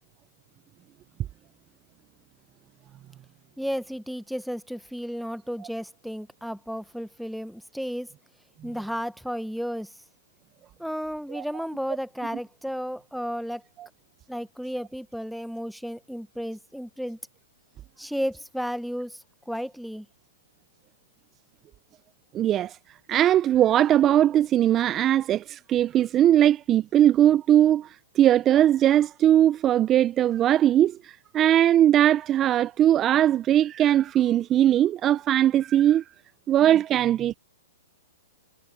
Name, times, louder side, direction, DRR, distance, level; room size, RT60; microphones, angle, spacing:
voice 1, 3.6-8.1 8.6-9.9 10.8-13.6 14.3-17.2 18.0-19.2 19.5-20.0, equal, ahead, 1.1 m, -33 dB
voice 2, 22.3-22.8 23.1-27.9 28.2-31.0 31.3-36.0 36.5-37.4, right 11 dB, 25° right, 0.7 m, -20 dB
hypercardioid pair, 115°, 0 cm